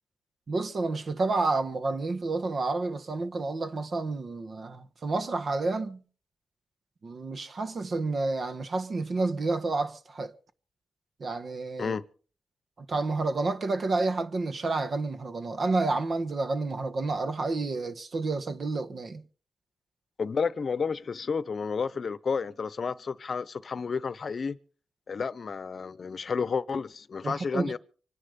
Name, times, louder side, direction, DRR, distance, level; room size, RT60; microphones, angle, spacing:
voice 1, 0.5-6.0 7.0-10.3 11.2-12.0 12.9-19.2 27.2-27.7, right 3 dB, 50° right, 1.3 m, -30 dB
voice 2, 20.2-24.6 25.1-27.8, left 5 dB, 50° left, 0.9 m, -31 dB
24.5 x 10.0 x 5.4 m
cardioid pair, 100°, 0 cm